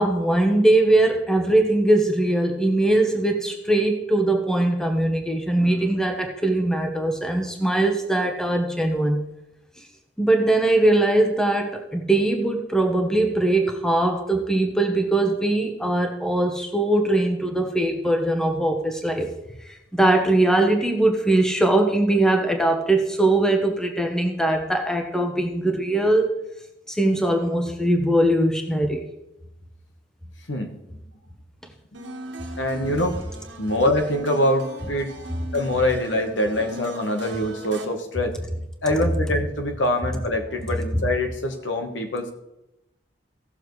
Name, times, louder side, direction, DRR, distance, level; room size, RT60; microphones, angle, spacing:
voice 1, 0.0-9.2 10.2-19.3 19.7-26.3 26.9-29.0, right 1 dB, 5° left, 3 dB, 1.1 m, -21 dB
voice 2, 30.5-30.8 32.5-33.2 33.6-35.1 35.5-38.4 38.8-42.3, left 1 dB, 85° left, 5 dB, 1.3 m, -24 dB
sound 1, 31.9-37.9, right 1 dB, 75° right, 1.4 m, -39 dB
16.5 x 6.9 x 3.2 m, 0.89 s
head